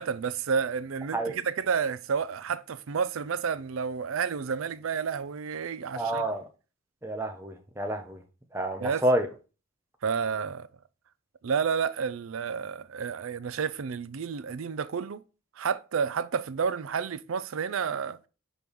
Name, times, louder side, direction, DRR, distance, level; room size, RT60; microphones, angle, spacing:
voice 1, 0.0-6.2 8.8-9.0 10.0-10.7 11.4-15.2 15.6-18.2, right 6 dB, 75° right, 0.5 m, -30 dB
voice 2, 5.9-6.4 7.0-8.2 8.5-9.3, right 1 dB, 10° right, 0.9 m, -28 dB
5.0 x 4.6 x 5.3 m
head